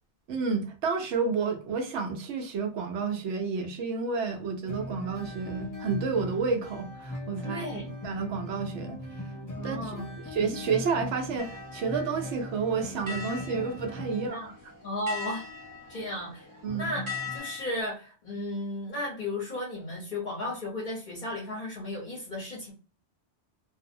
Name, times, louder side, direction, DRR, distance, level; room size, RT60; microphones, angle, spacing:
voice 1, 0.3-9.0 9.6-14.5 16.6-16.9, right 5 dB, 75° right, 0.9 m, -30 dB
sound 1, 4.7-14.3 16.7-17.4, left 1 dB, 25° left, 0.4 m, -39 dB
voice 2, 7.4-7.9 9.5-10.1 14.1-14.5 14.8-15.4 15.9-16.5 16.7-17.0 17.3-22.7, left 1 dB, 45° left, 1.0 m, -34 dB
sound 2, 11.4-17.8, left 5 dB, 25° right, 0.6 m, -41 dB
2.6 x 2.0 x 2.6 m
omnidirectional pair, 1.2 m